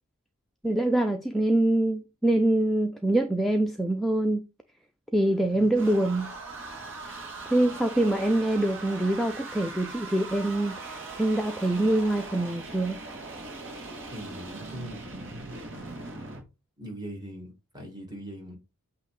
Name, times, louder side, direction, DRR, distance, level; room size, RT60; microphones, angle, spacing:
voice 1, 0.6-4.4 5.1-6.3 7.5-13.0, right 1 dB, ahead, 0.4 m, -25 dB
sound 1, 5.2-16.4, right 3 dB, 60° right, 1.7 m, -40 dB
voice 2, 14.1-15.6 16.8-18.6, right 1 dB, 20° right, 1.9 m, -41 dB
8.3 x 2.9 x 4.7 m
head